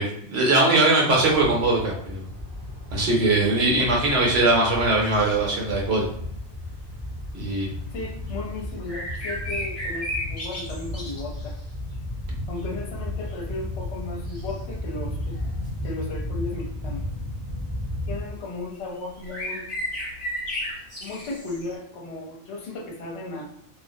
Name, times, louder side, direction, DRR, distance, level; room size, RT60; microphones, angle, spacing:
voice 1, 0.0-2.3 2.9-6.0 7.3-7.7, right 2 dB, 55° right, -2 dB, 0.9 m, -21 dB
sound 1, 1.1-18.2, left 1 dB, 20° right, 0.7 m, -34 dB
sound 2, 5.0-5.4 7.4-7.5 8.3-8.4 8.9-11.7 12.3-12.8 13.3-13.4 14.3-14.7 15.3-15.7 17.5-17.7 18.8-18.9 19.1-21.7, left 1 dB, 35° left, 1.0 m, -34 dB
voice 2, 7.9-11.6 12.5-15.4 15.8-17.1 18.1-19.6 21.0-23.4, left 2 dB, 60° left, -1 dB, 0.9 m, -35 dB
2.4 x 2.0 x 2.6 m, 0.66 s
omnidirectional pair, 1.4 m